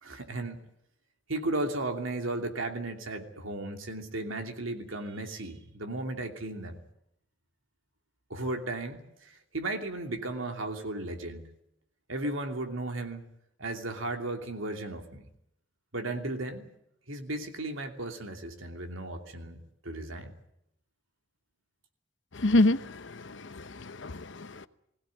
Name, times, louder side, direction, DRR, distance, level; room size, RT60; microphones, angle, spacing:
voice 1, 0.0-0.6 1.3-6.8 8.3-11.5 12.1-13.3 13.6-15.3 15.9-16.6 17.1-20.3, right 2 dB, 80° right, 2.8 m, -35 dB
voice 2, 22.3-24.7, left 2 dB, 65° left, 0.9 m, -27 dB
21.0 x 17.0 x 9.7 m
head